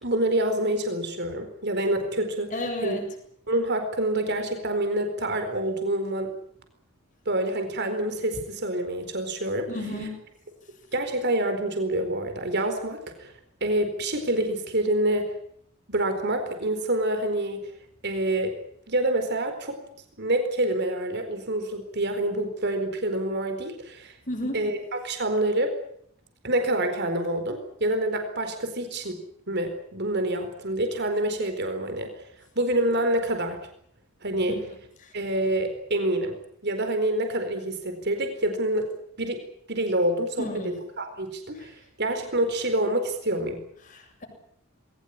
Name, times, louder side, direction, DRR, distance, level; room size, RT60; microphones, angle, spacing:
voice 1, 0.0-3.0 3.5-6.3 7.3-9.7 10.9-13.3 13.6-15.3 15.9-17.6 18.0-18.6 18.9-19.8 20.2-24.1 24.5-25.7 26.4-29.2 29.5-32.1 32.6-33.6 34.2-34.6 35.1-36.3 36.6-38.9 39.2-39.4 39.7-43.6, right 1 dB, 50° right, 7 dB, 4.4 m, -27 dB
voice 2, 2.5-3.0 9.7-10.2 24.3-24.6 40.4-40.7 43.9-44.3, left 1 dB, 40° left, 3 dB, 7.5 m, -32 dB
21.5 x 19.0 x 9.9 m, 0.69 s
head